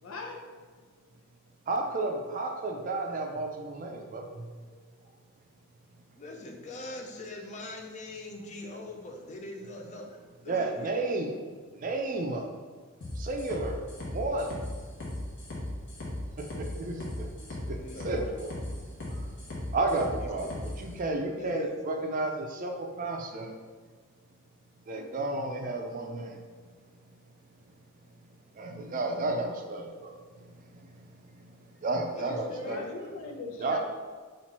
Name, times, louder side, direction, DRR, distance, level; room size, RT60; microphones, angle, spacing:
voice 1, 0.0-1.0 32.6-33.8, left 3 dB, 90° left, 0 dB, 0.7 m, -41 dB
voice 2, 1.7-4.5 10.5-11.3 11.7-12.5 13.2-13.8 14.1-14.6 16.4-17.3 17.7-18.6 19.0-20.5 20.8-23.5 24.9-26.4 28.6-31.5 31.8-32.8 33.6-33.8, right 2 dB, 40° right, 3 dB, 0.5 m, -32 dB
voice 3, 6.2-10.9 17.8-18.4 20.2-20.5 21.3-21.7 32.2-33.0, left 2 dB, 35° left, 2 dB, 0.5 m, -43 dB
sound 1, 13.0-20.8, left 1 dB, 60° left, 1.2 m, -37 dB
4.3 x 2.5 x 4.2 m, 1.5 s
head